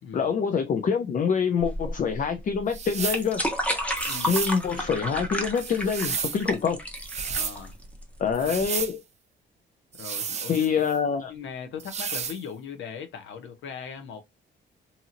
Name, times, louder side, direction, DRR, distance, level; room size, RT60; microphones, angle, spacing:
voice 1, 0.1-3.4 4.3-6.8 8.2-9.0 10.5-11.3, left 6 dB, 40° left, 0.5 m, -25 dB
sound 1, 1.6-8.6, equal, 5° left, 0.8 m, -32 dB
sound 2, 2.7-3.3 4.0-4.6 5.6-6.4 7.0-7.6 8.3-8.9 9.9-11.0 11.8-12.4, right 6 dB, 35° right, 0.5 m, -32 dB
voice 2, 4.0-4.4 7.2-7.7 8.4-8.5 10.0-10.8 11.3-14.2, left 7 dB, 75° left, 0.7 m, -38 dB
2.8 x 2.6 x 2.5 m
cardioid pair, 90°, 20 cm